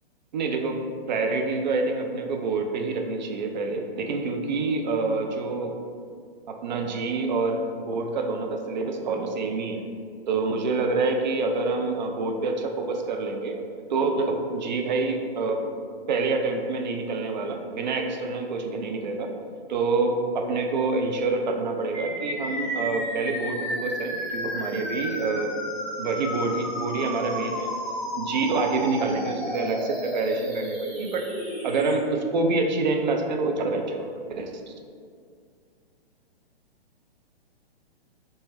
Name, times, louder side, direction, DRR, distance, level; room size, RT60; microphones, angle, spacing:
voice 1, 0.3-0.8 1.1-5.7 6.5-9.8 10.3-13.6 13.9-15.6 16.1-19.3 19.7-25.5 26.0-27.7 28.1-31.3 31.6-34.1 34.3-34.5, right 3 dB, 50° right, 3 dB, 0.4 m, -27 dB
sound 1, 21.9-31.9, equal, 85° right, 1.2 m, -33 dB
3.2 x 2.7 x 3.5 m, 2.2 s
figure-of-eight pair, 115°, 31 cm